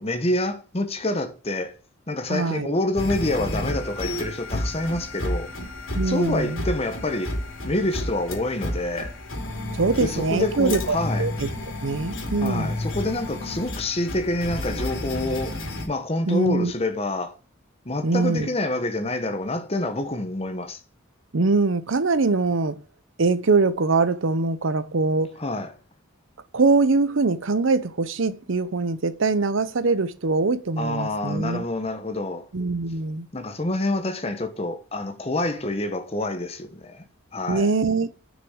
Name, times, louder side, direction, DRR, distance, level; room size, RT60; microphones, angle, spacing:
voice 1, 0.0-1.7 2.1-5.5 6.0-7.3 7.6-9.1 10.0-11.2 12.4-15.6 15.9-17.3 17.8-20.8 25.4-25.7 30.8-32.5 33.3-37.0 37.3-37.7, left 1 dB, 30° left, 1.1 m, -27 dB
voice 2, 2.3-2.7 5.9-6.6 9.7-11.5 11.8-12.8 16.3-16.7 18.0-18.5 21.3-22.8 23.2-25.3 26.5-31.6 32.5-33.3 37.5-38.1, right 3 dB, 70° right, 0.7 m, -23 dB
sound 1, 3.0-15.9, left 1 dB, 75° left, 2.8 m, -31 dB
6.7 x 6.1 x 6.2 m
head